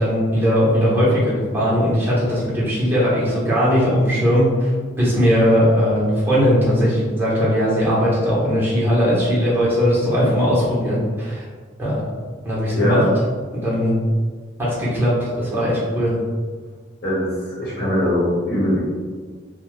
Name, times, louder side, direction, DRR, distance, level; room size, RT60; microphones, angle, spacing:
voice 1, 0.0-4.7 5.0-11.4 11.8-12.0 12.4-13.0 13.6-14.0 14.6-16.1, equal, 10° right, -8 dB, 0.8 m, -19 dB
voice 2, 12.7-13.1 17.0-18.8, left 1 dB, 55° left, -8 dB, 1.0 m, -21 dB
2.7 x 2.1 x 3.1 m, 1.5 s
head